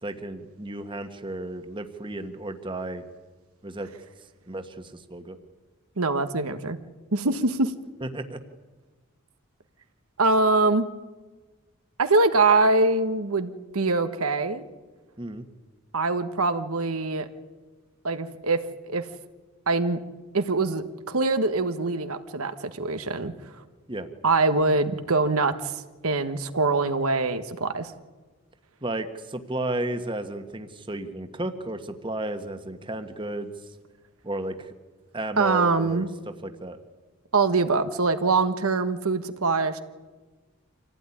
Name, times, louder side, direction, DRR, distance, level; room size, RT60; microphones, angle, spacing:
voice 1, 0.0-3.0 3.6-3.9 4.5-5.4 8.0-8.4 15.2-15.5 23.9-24.1 28.8-33.5 34.2-34.7 35.1-36.8, right 1 dB, 20° right, 8 dB, 1.5 m, -33 dB
voice 2, 6.0-6.8 7.1-7.7 10.2-10.9 12.0-14.6 15.9-17.3 18.0-18.6 18.9-19.0 19.7-20.0 20.3-23.3 24.2-27.9 35.4-36.1 37.3-39.8, right 3 dB, 85° right, 9 dB, 1.4 m, -23 dB
26.0 x 16.5 x 9.9 m, 1.3 s
head